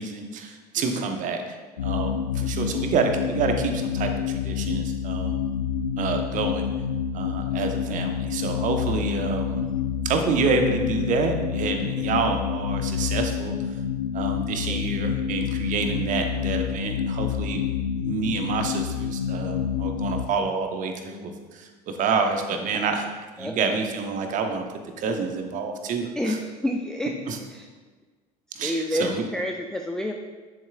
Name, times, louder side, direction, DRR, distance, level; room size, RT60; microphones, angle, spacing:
voice 1, 0.0-1.4 1.8-5.6 6.0-6.7 7.1-9.7 10.0-13.5 14.1-17.6 17.9-23.0 23.4-24.7 25.0-26.4 27.3-27.4 28.5-29.2, right 4 dB, 40° right, 5 dB, 1.1 m, -28 dB
voice 2, 0.8-1.1 14.7-14.9 22.7-22.8 23.4-23.6 26.2-27.1 27.5-27.7 28.6-30.1, left 1 dB, 5° left, 3 dB, 0.5 m, -29 dB
sound 1, 1.8-20.3, left 8 dB, 80° left, 0.5 m, -28 dB
10.5 x 7.2 x 2.5 m, 1.3 s
figure-of-eight pair, 75°, 21 cm